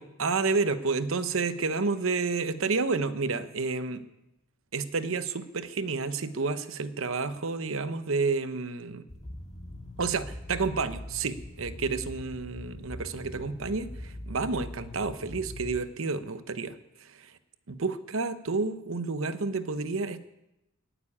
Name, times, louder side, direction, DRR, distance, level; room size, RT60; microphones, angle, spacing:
voice 1, 0.0-4.0 4.7-9.1 10.0-17.3 17.7-20.2, right 4 dB, 65° right, 12 dB, 0.9 m, -30 dB
sound 1, 9.1-15.8, left 1 dB, 30° left, 2.0 m, -42 dB
16.0 x 7.0 x 9.8 m, 0.91 s
head